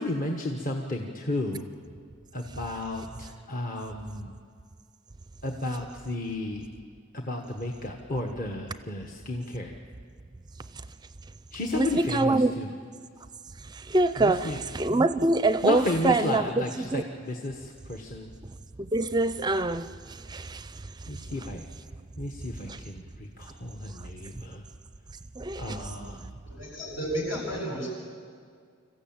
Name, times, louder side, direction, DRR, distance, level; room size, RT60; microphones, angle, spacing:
voice 1, 0.0-1.7 2.3-4.3 5.4-6.7 7.1-9.7 11.5-12.7 14.2-14.6 15.6-18.3 21.1-21.7 22.2-24.6 25.6-26.2, left 1 dB, 45° left, 1.3 m, -33 dB
voice 2, 11.7-12.5 13.6-17.0 18.8-21.5 22.7-22.8 25.4-26.3, right 2 dB, 20° right, 0.5 m, -26 dB
voice 3, 26.5-27.9, equal, 75° left, 7.7 m, -32 dB
26.0 x 15.0 x 8.9 m
head